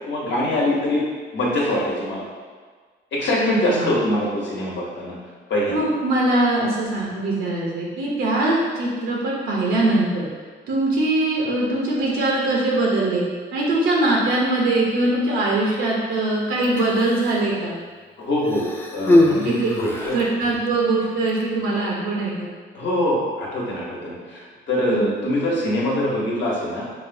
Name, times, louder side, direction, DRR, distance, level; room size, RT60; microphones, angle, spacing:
voice 1, 0.1-1.0 1.3-2.3 3.1-5.1 5.5-5.8 18.2-18.7 18.9-20.2 22.7-26.8, left 1 dB, 65° left, -4 dB, 1.1 m, -23 dB
voice 2, 5.7-10.3 10.7-13.2 13.5-17.7 19.4-19.7 20.1-22.5 24.9-25.1, right 2 dB, 85° right, -3 dB, 0.7 m, -22 dB
Human voice, 16.6-17.5 18.4-20.4 21.3-21.4, left 1 dB, 10° left, 0.4 m, -22 dB
5.0 x 2.2 x 2.6 m, 1.5 s
cardioid pair, 90°, 20 cm